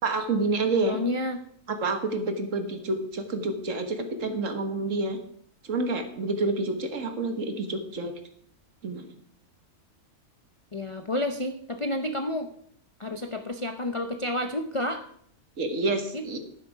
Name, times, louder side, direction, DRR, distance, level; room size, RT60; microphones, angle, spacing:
voice 1, 0.0-1.0 1.7-5.2 5.6-8.1 8.8-9.1 15.6-16.4, right 3 dB, 60° right, 7 dB, 1.7 m, -28 dB
voice 2, 0.8-1.4 10.7-12.5 13.0-15.1 16.1-16.4, left 1 dB, 40° left, 7 dB, 0.4 m, -30 dB
11.0 x 10.5 x 4.9 m, 0.65 s
omnidirectional pair, 1.6 m